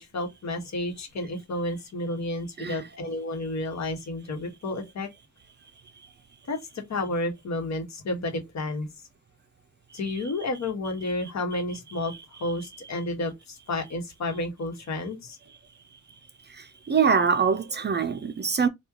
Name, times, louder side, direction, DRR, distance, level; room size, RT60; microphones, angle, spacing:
voice 1, 0.0-5.1 6.5-8.9 9.9-12.1 12.4-15.4, left 2 dB, 60° left, 1.2 m, -31 dB
voice 2, 16.9-18.7, right 6 dB, 35° right, 0.4 m, -23 dB
3.1 x 2.3 x 3.6 m
wide cardioid pair, 140°, 31 cm